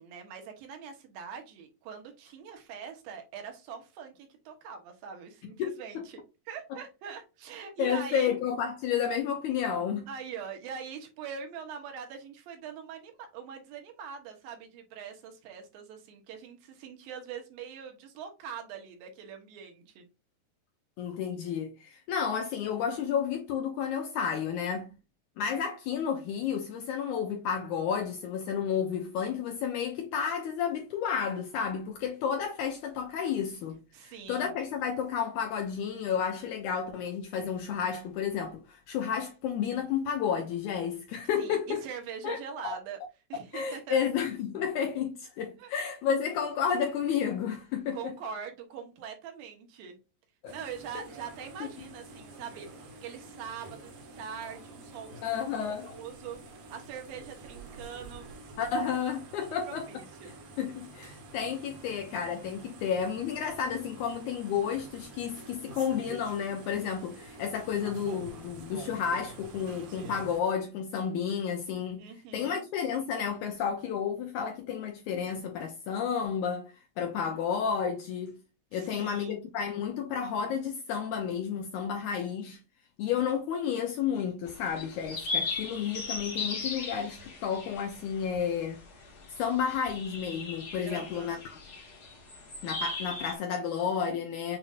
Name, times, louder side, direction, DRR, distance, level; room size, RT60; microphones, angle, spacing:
voice 1, 0.0-6.2 6.5-8.3 10.1-20.0 33.9-34.6 41.4-43.0 43.3-44.0 45.6-45.7 47.9-50.0 50.5-55.4 55.8-56.4 56.7-58.3 59.7-60.3 72.0-72.6 78.7-79.4 90.8-91.4, right 7 dB, 85° right, 3.0 m, -43 dB
voice 2, 5.4-6.1 7.8-10.1 21.0-24.9 25.4-41.8 42.2-42.4 42.6-42.8 43.5-48.1 50.4-50.5 51.0-51.1 51.6-51.7 55.2-56.0 58.6-59.9 60.6-78.4 78.7-82.6 83.0-88.8 89.4-91.6 92.6-94.6, left 7 dB, 75° left, 1.8 m, -31 dB
sound 1, 50.5-70.4, right 3 dB, 65° right, 3.0 m, -47 dB
sound 2, 84.5-93.3, left 3 dB, 45° left, 1.3 m, -38 dB
7.8 x 2.7 x 2.4 m
omnidirectional pair, 4.0 m